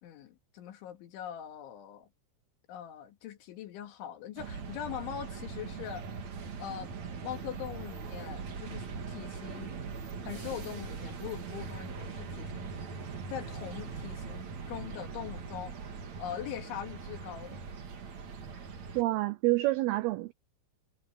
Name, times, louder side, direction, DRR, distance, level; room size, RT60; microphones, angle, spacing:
voice 1, 0.0-2.1 2.7-6.0 6.6-6.9 7.2-9.7 10.2-12.7 13.3-15.7 16.2-17.6, left 10 dB, 80° left, 4.5 m, -42 dB
sound 1, 4.4-19.0, right 5 dB, 45° right, 3.0 m, -41 dB
voice 2, 19.0-20.3, right 19 dB, 85° right, 2.2 m, -28 dB
omnidirectional pair, 5.4 m